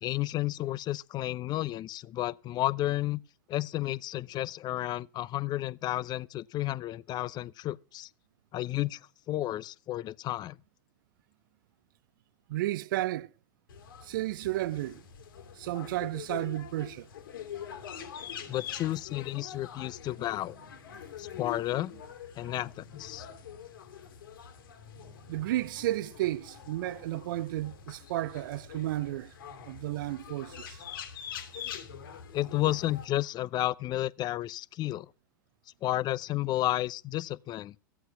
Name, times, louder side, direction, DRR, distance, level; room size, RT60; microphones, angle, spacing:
voice 1, 0.0-3.2 3.5-8.1 8.5-9.0 9.3-10.6 18.5-20.6 21.2-21.9 22.4-23.3 32.3-35.1 35.8-37.7, left 15 dB, 40° left, 0.6 m, -32 dB
voice 2, 12.5-13.3 14.0-15.0 15.6-17.1 25.3-29.3 29.7-30.8, right 15 dB, 70° right, 0.5 m, -32 dB
sound 1, 13.7-33.1, left 8 dB, 80° left, 2.7 m, -45 dB
15.0 x 8.1 x 5.7 m
hypercardioid pair, 100°, 11 cm